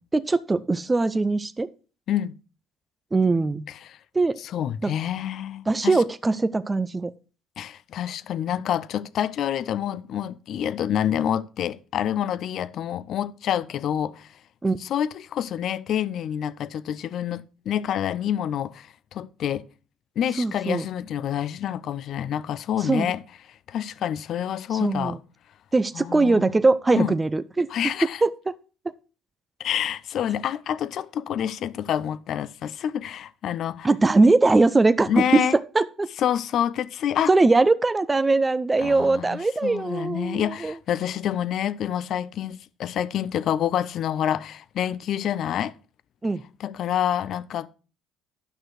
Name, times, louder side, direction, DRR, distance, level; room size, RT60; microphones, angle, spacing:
voice 1, 0.1-1.7 3.1-3.6 4.1-4.4 4.8-4.9 5.7-7.1 14.6-14.8 20.4-20.8 22.9-23.1 24.7-25.2 25.7-27.9 28.2-28.3 33.8-36.1 37.3-40.7 46.2-46.4, right 3 dB, 20° right, 0.5 m, -21 dB
voice 2, 3.7-4.0 4.4-6.0 7.6-14.4 14.8-19.7 20.2-23.2 23.5-25.2 25.9-26.6 26.9-27.1 27.7-28.2 29.6-33.9 35.1-35.6 36.2-37.3 38.8-45.7 46.6-47.7, left 10 dB, 60° left, 0.5 m, -27 dB
9.9 x 6.1 x 4.8 m
supercardioid pair, 70°, 0 cm